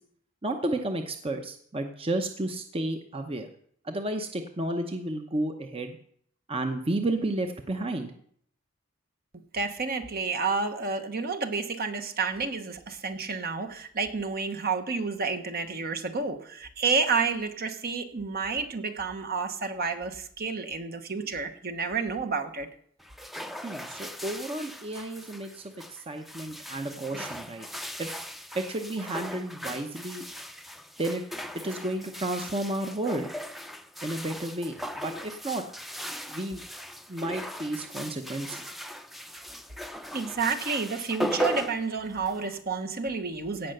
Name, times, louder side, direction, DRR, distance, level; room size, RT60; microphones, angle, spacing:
voice 1, 0.4-3.5 3.8-6.0 6.5-8.1 23.6-27.7 28.0-28.1 28.5-30.2 31.0-31.2 31.6-33.3 34.0-35.6 36.3-36.6 37.1-38.6, right 1 dB, 30° right, 5 dB, 0.8 m, -32 dB
voice 2, 9.5-22.7 40.1-43.7, right 4 dB, 50° right, 7 dB, 1.1 m, -30 dB
sound 1, 23.0-42.6, equal, ahead, 0.6 m, -38 dB
16.5 x 5.7 x 6.6 m, 0.64 s
head